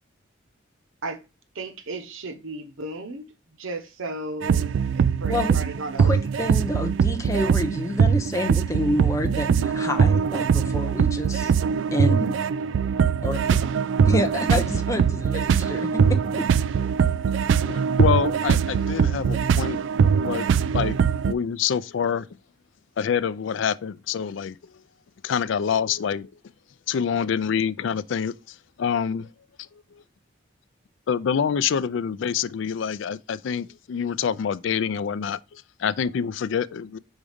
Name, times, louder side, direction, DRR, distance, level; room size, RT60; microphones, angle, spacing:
voice 1, 1.5-3.2 3.6-4.7 5.2-6.1 6.4-6.5, right 2 dB, 85° right, 0.9 m, -34 dB
sound 1, 4.4-21.3, right 6 dB, 65° right, 0.3 m, -22 dB
voice 2, 6.0-11.5 11.9-12.4 13.2-13.4 14.1-16.5, left 1 dB, 15° left, 0.6 m, -28 dB
voice 3, 17.6-19.8 20.2-22.3 23.0-24.6 25.2-26.3 26.9-29.3 29.9-30.0 31.1-37.0, left 7 dB, 70° left, 0.4 m, -26 dB
4.9 x 4.0 x 5.0 m
head